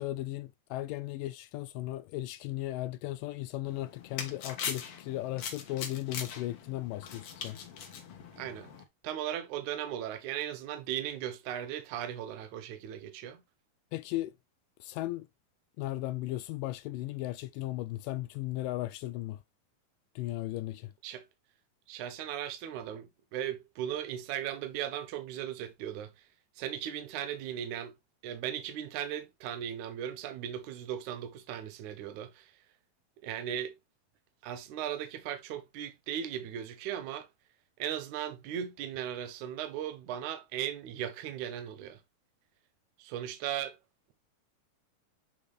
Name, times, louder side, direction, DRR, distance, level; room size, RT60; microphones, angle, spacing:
voice 1, 0.0-7.6 13.9-14.4 14.8-15.3 15.8-19.4 20.2-20.9, left 16 dB, 80° left, 2.0 m, -36 dB
sound 1, 3.7-8.8, left 7 dB, 55° left, 1.9 m, -41 dB
voice 2, 8.4-8.7 9.0-13.4 21.0-21.3 21.9-26.1 26.6-27.9 28.2-32.5 33.2-33.7 34.4-37.3 37.8-42.0 43.0-43.8, right 10 dB, 70° right, 2.1 m, -37 dB
8.8 x 4.0 x 3.1 m
omnidirectional pair, 4.2 m